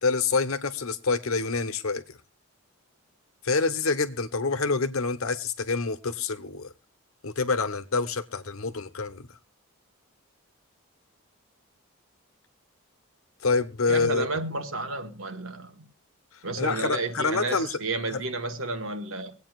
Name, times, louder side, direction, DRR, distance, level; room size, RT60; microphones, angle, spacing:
voice 1, 0.0-2.2 3.4-6.7 7.2-9.3 13.4-14.3 16.6-17.8 18.1-18.2, left 4 dB, 70° left, 1.1 m, -27 dB
voice 2, 13.9-15.8 16.4-19.3, right 2 dB, 65° right, 1.4 m, -31 dB
24.5 x 8.7 x 2.4 m
head